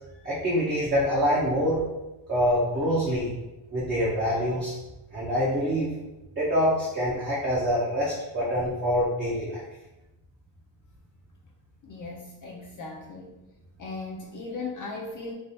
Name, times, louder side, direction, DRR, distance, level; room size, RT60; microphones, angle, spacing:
voice 1, 0.2-1.8 2.3-3.3 3.7-4.7 5.1-5.9 6.4-9.6, equal, 25° right, -6 dB, 0.6 m, -25 dB
voice 2, 11.8-13.3 13.8-15.3, left 3 dB, 45° left, -2 dB, 0.4 m, -37 dB
3.3 x 2.3 x 2.6 m, 1.0 s
cardioid pair, 115°, 47 cm